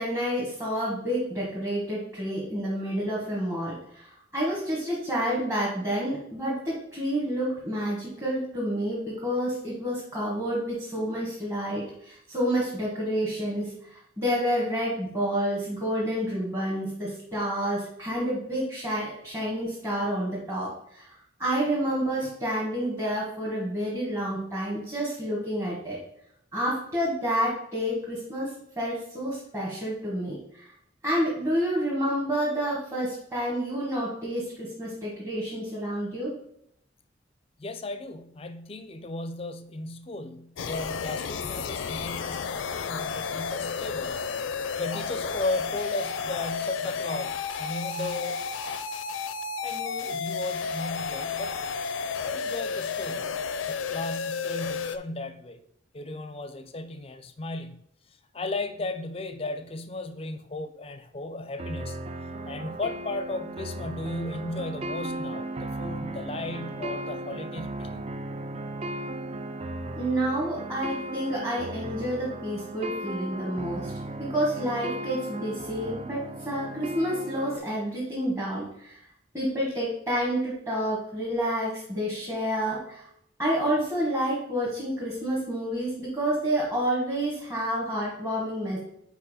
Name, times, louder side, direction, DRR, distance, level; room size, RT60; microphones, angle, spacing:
voice 1, 0.0-26.0 26.5-30.7 31.0-36.3 70.0-73.9 74.2-79.0 79.3-83.0 83.4-88.8, equal, 15° right, 1.4 m, -29 dB
voice 2, 37.6-44.2 44.8-48.4 49.6-51.6 52.2-53.4 53.6-55.6 55.9-57.8 58.3-62.0 62.5-68.0, left 2 dB, 30° left, 0.5 m, -35 dB
sound 1, 40.6-55.0, left 5 dB, 85° left, 0.4 m, -32 dB
sound 2, 61.6-77.6, right 1 dB, 30° right, 0.3 m, -36 dB
4.6 x 4.6 x 4.9 m
head